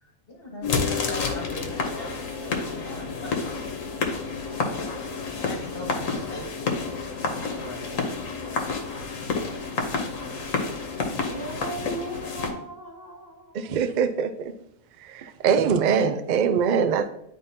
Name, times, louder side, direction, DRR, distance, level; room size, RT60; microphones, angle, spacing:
voice 1, 0.0-3.3 4.6-5.1 5.4-8.1, left 1 dB, 45° left, -1 dB, 1.5 m, -41 dB
sound 1, 0.6-12.5, left 4 dB, 80° left, 1.3 m, -29 dB
voice 2, 11.2-13.7, right 1 dB, 15° right, -4 dB, 1.9 m, -37 dB
voice 3, 13.5-14.5 15.0-17.1, right 6 dB, 75° right, 9 dB, 0.4 m, -23 dB
10.5 x 3.6 x 2.7 m, 0.75 s
omnidirectional pair, 1.3 m